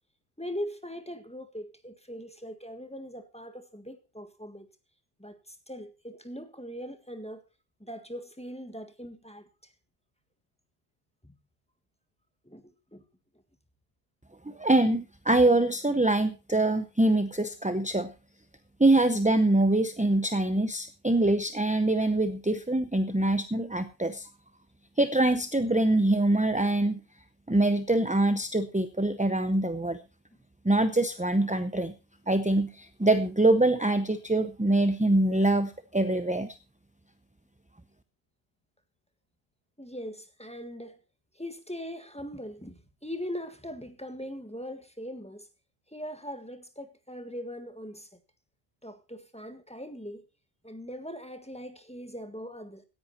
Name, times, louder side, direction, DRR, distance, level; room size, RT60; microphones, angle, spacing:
voice 1, 0.4-4.7 5.2-7.4 7.8-9.5 11.2-11.3 12.4-13.0 21.2-21.3 39.8-41.0 41.3-45.5 45.9-48.1 48.8-50.2 50.6-52.8, equal, 5° left, 1.7 m, -40 dB
voice 2, 14.4-18.1 18.8-24.3 25.0-27.0 27.5-30.0 30.6-31.9 32.3-36.6, right 2 dB, 10° right, 0.5 m, -24 dB
16.5 x 10.5 x 4.2 m
omnidirectional pair, 1.1 m